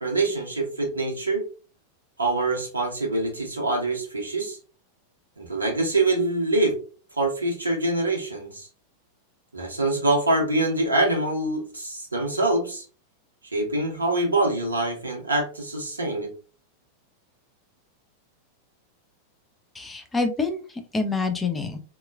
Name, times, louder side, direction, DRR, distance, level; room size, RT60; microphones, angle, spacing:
voice 1, 0.0-1.4 2.2-4.6 5.4-6.8 7.2-8.7 9.5-12.8 13.5-16.3, right 2 dB, 80° right, 1 dB, 0.6 m, -25 dB
voice 2, 19.7-21.8, left 3 dB, 10° left, 6 dB, 0.4 m, -27 dB
2.9 x 2.2 x 2.3 m, 0.38 s
figure-of-eight pair, 90°, 0 cm